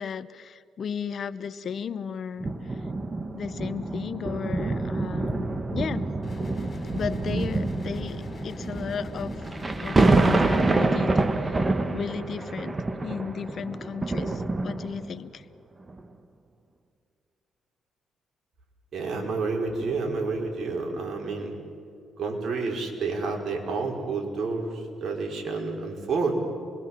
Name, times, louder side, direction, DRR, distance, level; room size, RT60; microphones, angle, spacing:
voice 1, 0.0-2.8 3.3-6.1 6.9-9.4 9.8-12.7 13.0-15.4, left 6 dB, 55° left, 15 dB, 0.8 m, -35 dB
sound 1, 2.4-15.2 15.9-16.0, right 2 dB, 25° right, 1.5 m, -27 dB
sound 2, 6.2-10.6, left 2 dB, 35° left, 7.1 m, -42 dB
voice 2, 18.9-21.5 22.2-26.3, right 4 dB, 55° right, 1 dB, 5.3 m, -29 dB
27.5 x 22.0 x 7.6 m, 2.5 s
cardioid pair, 90°, 0 cm